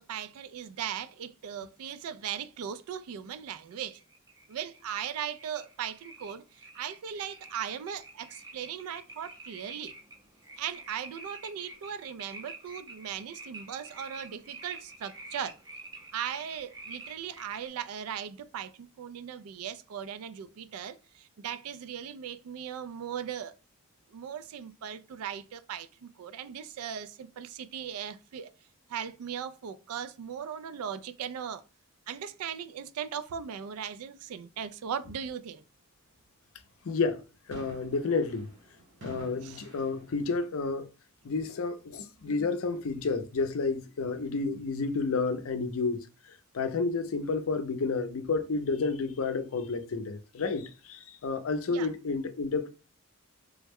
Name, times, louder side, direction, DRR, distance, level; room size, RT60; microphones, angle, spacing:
voice 1, 0.0-4.0 4.5-6.4 6.7-9.9 10.6-15.6 16.1-23.5 24.1-28.5 28.9-31.6 32.1-35.6 39.4-39.6 51.7-51.9, right 8 dB, 80° right, 0.3 m, -38 dB
sound 1, 3.7-17.7, right 3 dB, 15° right, 0.5 m, -48 dB
voice 2, 36.8-37.2 37.5-38.5 39.0-40.9 41.2-52.7, left 4 dB, 65° left, 0.5 m, -31 dB
sound 2, 37.5-40.5, equal, 60° right, 1.1 m, -49 dB
3.4 x 2.1 x 3.4 m
head